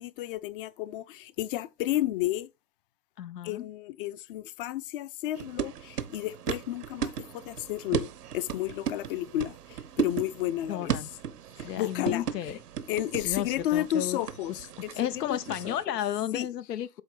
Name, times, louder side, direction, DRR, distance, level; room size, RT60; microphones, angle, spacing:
voice 1, 0.0-2.5 3.4-9.5 10.0-10.9 11.8-12.6 12.9-14.5 14.8-14.9 15.3-15.4 15.6-15.7 16.3-16.5, left 14 dB, 35° left, 0.5 m, -32 dB
voice 2, 3.2-3.7 10.7-11.1 11.6-12.6 13.1-14.2 14.5-14.7 15.0-17.0, left 11 dB, 85° left, 0.5 m, -33 dB
sound 1, 5.3-15.8, right 8 dB, 75° right, 0.9 m, -36 dB
7.8 x 2.7 x 5.3 m
figure-of-eight pair, 105°, 47 cm